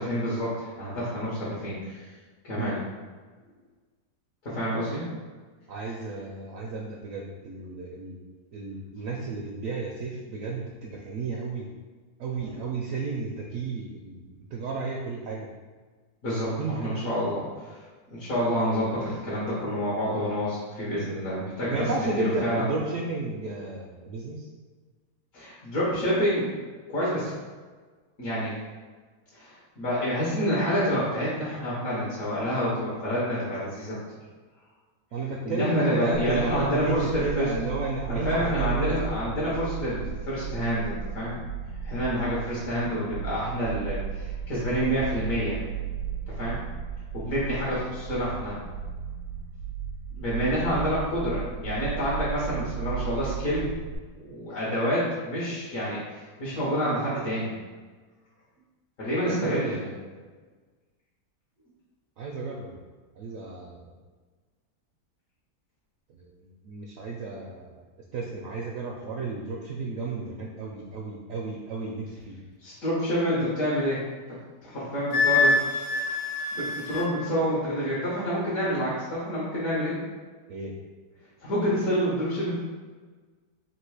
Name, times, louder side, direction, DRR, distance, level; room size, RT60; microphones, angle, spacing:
voice 1, 0.0-2.0 2.4-2.8 4.4-5.0 12.5-12.6 16.2-17.4 18.1-22.7 25.3-26.5 26.9-27.3 28.2-28.5 29.3-34.0 35.4-37.5 38.1-41.4 41.8-45.6 46.3-46.6 47.1-48.6 50.2-53.7 54.2-57.5 59.0-59.9 72.6-74.0 74.6-75.6 76.5-80.0 81.4-82.6, equal, 65° left, -8 dB, 1.6 m, -28 dB
voice 2, 5.7-8.2 8.5-11.7 12.2-15.5 16.6-17.2 21.7-24.5 35.1-38.9 42.1-42.3 59.3-59.8 62.2-62.7 63.2-63.8 66.1-66.3 66.6-67.7 68.1-72.4 80.5-80.7, right 3 dB, 70° right, -1 dB, 0.8 m, -33 dB
sound 1, 36.1-53.9, right 7 dB, 85° right, 1.2 m, -35 dB
Wind instrument woodwind instrument, 75.1-77.1, left 3 dB, 85° left, 1.2 m, -25 dB
3.7 x 2.7 x 4.7 m, 1.4 s
omnidirectional pair, 1.7 m